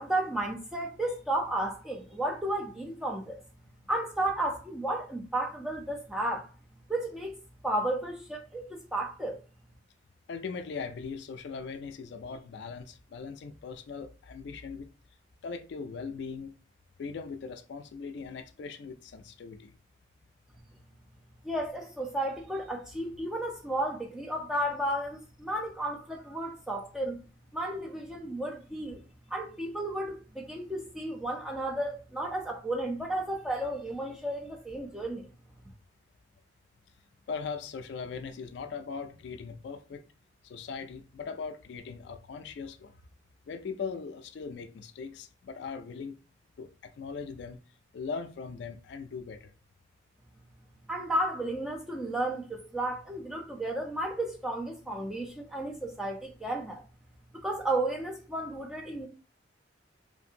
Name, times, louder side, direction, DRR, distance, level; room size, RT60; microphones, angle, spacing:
voice 1, 0.0-3.4 3.9-6.5 6.9-7.4 7.6-9.4 21.4-27.2 27.5-29.0 29.3-35.3 50.9-56.8 57.4-59.1, right 1 dB, 5° right, 0.4 m, -33 dB
voice 2, 10.3-14.9 15.4-16.5 17.0-19.7 37.3-40.0 40.4-42.9 43.5-46.2 46.6-47.6 47.9-49.5, left 5 dB, 65° left, 0.3 m, -39 dB
2.6 x 2.5 x 2.7 m
head